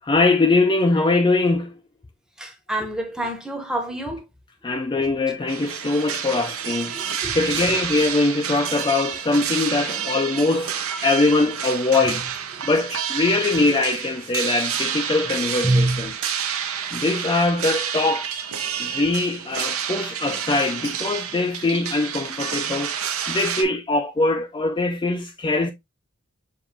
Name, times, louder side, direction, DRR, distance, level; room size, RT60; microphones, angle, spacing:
voice 1, 0.0-1.7 4.6-6.9 7.3-12.3 12.6-16.1 16.9-18.4 18.8-22.9 23.3-25.7, left 3 dB, 20° left, 0.3 m, -22 dB
voice 2, 2.4-4.2 6.9-7.4 15.6-16.1, right 1 dB, 5° right, 0.8 m, -25 dB
sound 1, 5.5-23.6, right 8 dB, 80° right, 0.8 m, -29 dB
6.8 x 2.5 x 2.7 m
head